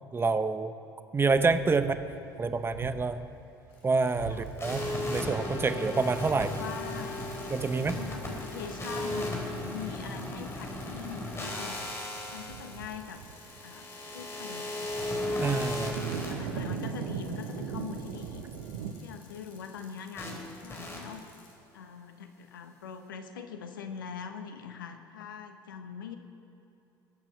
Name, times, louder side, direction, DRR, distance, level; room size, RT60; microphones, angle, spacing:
voice 1, 0.1-0.7 1.1-1.9 2.4-3.2 3.8-4.8 5.1-6.5 7.5-8.0 15.4-16.0, right 4 dB, 20° right, 11 dB, 0.8 m, -27 dB
sound 1, 1.2-3.3 3.7-3.8 4.2-18.9, right 6 dB, 60° right, 1.1 m, -42 dB
Bicycle, 3.7-21.5, left 4 dB, 55° left, 3.5 m, -56 dB
sound 2, 4.6-16.3 20.2-20.3 20.7-21.0, left 1 dB, 25° left, 4.0 m, -36 dB
voice 2, 6.3-7.1 7.8-11.8 12.3-13.2 13.6-13.8 14.1-14.9 15.8-18.4 19.0-21.2 21.7-26.2, left 7 dB, 75° left, 7 dB, 1.2 m, -42 dB
21.5 x 9.0 x 5.8 m, 2.8 s
figure-of-eight pair, 60°, 11 cm